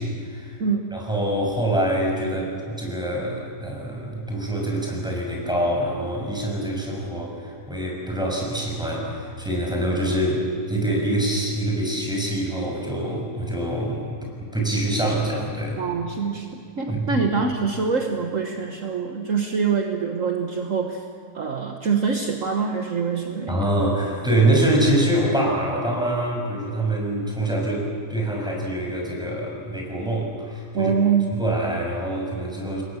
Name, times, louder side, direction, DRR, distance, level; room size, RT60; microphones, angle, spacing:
voice 1, 0.0-0.6 0.9-14.0 14.5-15.8 16.9-17.2 23.5-30.9 31.3-32.8, right 1 dB, ahead, -1 dB, 6.5 m, -25 dB
voice 2, 15.8-21.0 21.3-23.6 30.7-31.4, right 5 dB, 55° right, 3 dB, 1.7 m, -24 dB
28.5 x 22.0 x 7.3 m, 2.4 s
omnidirectional pair, 1.7 m